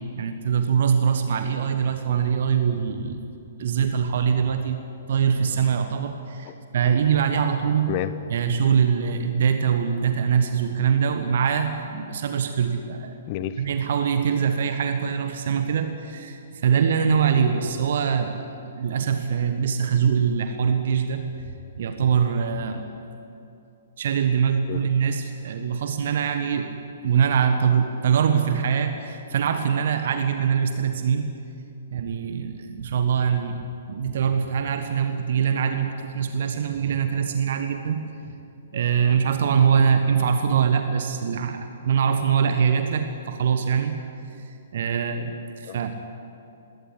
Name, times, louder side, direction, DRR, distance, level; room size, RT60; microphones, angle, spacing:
voice 1, 0.0-3.2 3.6-4.8 5.1-8.0 8.3-13.2 13.6-18.5 18.7-21.2 21.8-22.8 24.0-26.7 27.0-31.4 31.9-38.3 38.7-44.0 44.4-45.9, right 7 dB, 50° right, 7 dB, 1.5 m, -23 dB
voice 2, 13.3-13.6 24.7-24.8 39.8-39.9 45.6-46.0, left 12 dB, 35° left, 14 dB, 1.0 m, -30 dB
20.5 x 18.0 x 9.9 m, 2.7 s
figure-of-eight pair, 120°, 0 cm